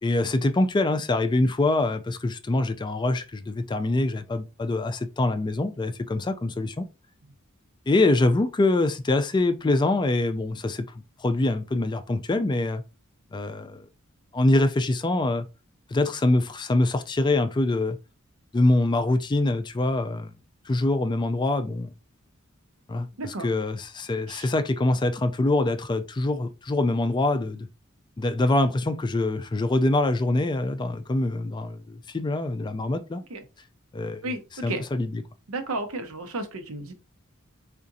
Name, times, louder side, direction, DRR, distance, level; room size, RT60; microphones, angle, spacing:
voice 1, 0.0-6.9 7.9-10.8 11.2-12.8 13.3-13.9 14.3-15.5 15.9-18.0 18.5-20.3 20.7-21.9 22.9-27.7 28.2-33.2 33.9-34.3 34.6-35.2, left 2 dB, 20° left, 0.4 m, -24 dB
voice 2, 23.2-23.5 24.3-24.5 33.3-33.4 34.2-34.4 34.7-34.8 35.5-36.9, right 2 dB, 80° right, 0.8 m, -32 dB
4.8 x 2.5 x 2.6 m
head